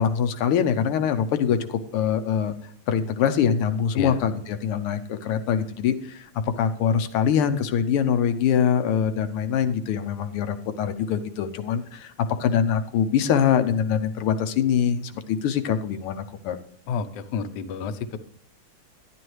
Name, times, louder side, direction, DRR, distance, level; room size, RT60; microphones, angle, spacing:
voice 1, 0.0-2.5 2.9-6.3 6.6-12.1 12.4-16.6, left 8 dB, 90° left, 8 dB, 1.6 m, -23 dB
voice 2, 16.9-18.2, left 6 dB, 70° left, 10 dB, 1.1 m, -30 dB
11.0 x 10.5 x 3.1 m, 0.70 s
omnidirectional pair, 2.4 m